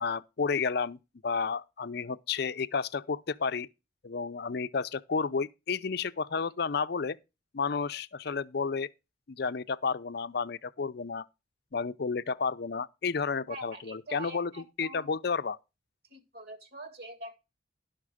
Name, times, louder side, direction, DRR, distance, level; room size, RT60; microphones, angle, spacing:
voice 1, 0.0-3.7 4.0-7.2 7.5-8.9 9.3-11.3 11.7-15.6, left 5 dB, 55° left, 0.5 m, -31 dB
voice 2, 13.5-15.1 16.1-17.4, right 1 dB, 55° right, 2.0 m, -45 dB
12.0 x 5.9 x 4.9 m
head